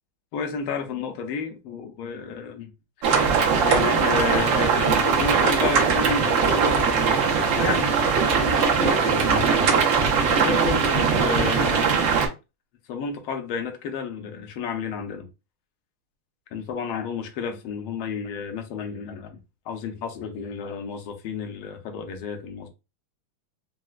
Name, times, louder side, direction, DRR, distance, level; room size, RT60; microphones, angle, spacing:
voice 1, 0.3-2.7 3.6-9.6 10.3-12.1 12.9-15.3 16.5-19.4 19.7-22.7, left 5 dB, 75° left, 1.5 m, -31 dB
sound 1, 3.0-12.3, right 5 dB, 65° right, 1.5 m, -20 dB
4.4 x 2.1 x 2.3 m
omnidirectional pair, 2.4 m